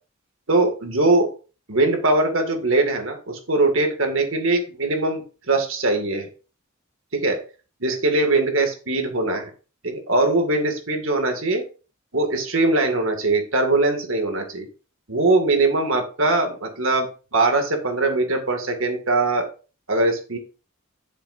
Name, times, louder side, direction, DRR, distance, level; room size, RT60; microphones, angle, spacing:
voice 1, 0.5-1.3 1.7-6.3 7.1-7.4 7.8-9.5 9.8-11.6 12.1-14.7 15.1-19.5 19.9-20.4, right 2 dB, 70° right, 4 dB, 2.1 m, -21 dB
11.0 x 6.7 x 2.6 m, 0.35 s
head